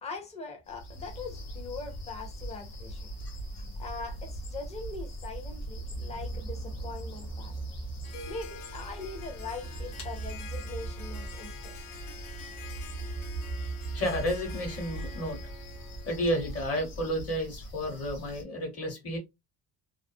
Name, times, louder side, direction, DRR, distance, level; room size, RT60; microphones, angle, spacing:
voice 1, 0.0-3.1 3.5-7.5 8.3-11.7, left 4 dB, 15° left, 0.5 m, -41 dB
sound 1, 0.7-18.4, equal, 80° left, 1.1 m, -43 dB
sound 2, 4.1-16.6, right 3 dB, 35° right, 0.4 m, -41 dB
Harp, 8.0-16.8, left 4 dB, 60° left, 0.6 m, -47 dB
voice 2, 13.9-15.4 16.1-19.2, equal, 35° left, 1.1 m, -31 dB
2.4 x 2.4 x 2.6 m
cardioid pair, 170°, 40 cm